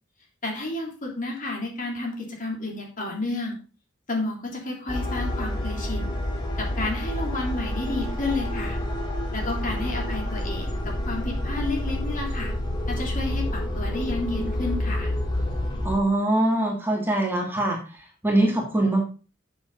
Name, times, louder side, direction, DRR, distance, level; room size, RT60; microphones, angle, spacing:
voice 1, 0.4-3.6 4.1-6.1 6.6-8.8 9.3-12.5 12.9-15.1, left 2 dB, 40° left, 0 dB, 3.5 m, -31 dB
sound 1, 4.9-16.0, left 1 dB, 20° left, 2.9 m, -28 dB
voice 2, 15.8-17.8 18.2-19.0, right 1 dB, 10° right, -1 dB, 2.9 m, -22 dB
13.0 x 7.2 x 4.1 m, 0.34 s
head